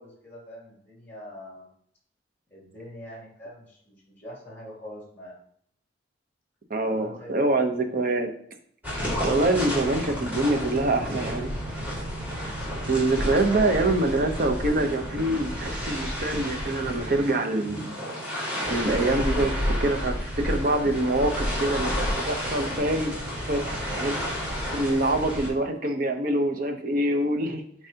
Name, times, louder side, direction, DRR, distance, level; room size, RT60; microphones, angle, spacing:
voice 1, 0.0-1.7 2.5-5.4 6.8-7.6 13.3-14.0, equal, 10° left, -4 dB, 2.6 m, -43 dB
voice 2, 6.7-8.3 9.2-11.5 12.9-17.9 18.7-23.2 23.5-24.1 24.7-27.6, right 2 dB, 50° right, 5 dB, 0.9 m, -25 dB
sound 1, 8.8-25.5, equal, 10° right, 2.5 m, -31 dB
8.9 x 4.7 x 2.9 m, 0.66 s
head